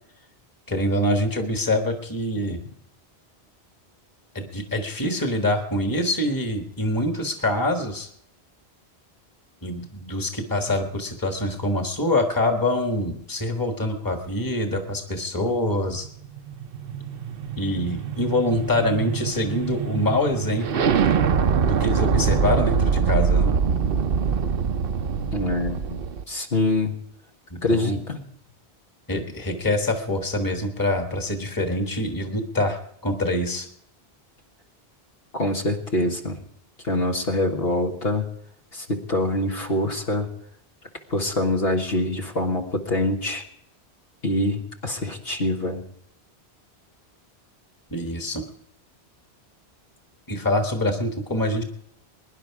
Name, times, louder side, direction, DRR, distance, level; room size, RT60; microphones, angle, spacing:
voice 1, 0.7-2.6 4.3-8.1 9.6-16.1 17.6-20.9 21.6-23.5 27.5-28.0 29.1-33.7 47.9-48.4 50.3-51.6, left 1 dB, 20° left, 4 dB, 1.5 m, -25 dB
sound 1, 16.0-26.2, right 6 dB, 60° right, 0.9 m, -24 dB
voice 2, 25.3-26.9 27.6-28.2 35.3-36.4 36.8-38.2 38.7-40.3 41.1-43.4 44.2-45.8, left 1 dB, 65° left, 2 dB, 1.7 m, -25 dB
22.0 x 10.5 x 4.8 m, 0.72 s
omnidirectional pair, 1.1 m